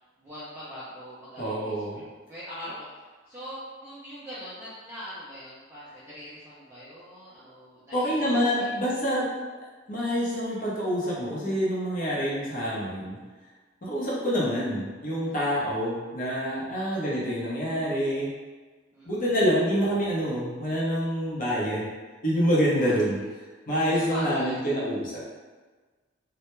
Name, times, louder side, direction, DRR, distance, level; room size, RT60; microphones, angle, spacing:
voice 1, 0.2-9.0 15.2-15.5 16.7-17.0 18.9-19.3 22.8-23.3 23.9-24.6, equal, 15° right, -11 dB, 0.4 m, -42 dB
voice 2, 1.4-2.0 7.9-9.3 9.9-13.2 13.8-18.3 19.1-21.9 22.2-23.2 23.7-25.2, equal, 45° left, -6 dB, 0.7 m, -26 dB
2.2 x 2.0 x 2.9 m, 1.3 s
head